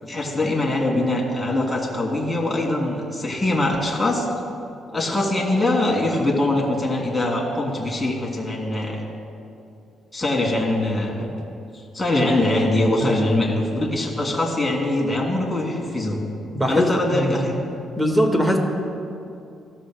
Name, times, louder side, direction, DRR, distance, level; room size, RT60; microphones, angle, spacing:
voice 1, 0.0-4.3 4.9-9.0 10.1-11.3 11.9-16.3 16.7-17.5, left 2 dB, 10° left, -3 dB, 2.9 m, -22 dB
voice 2, 16.5-17.6 18.0-18.6, equal, 10° right, 2 dB, 1.6 m, -21 dB
16.0 x 13.0 x 2.2 m, 2.6 s
cardioid pair, 90°, 0 cm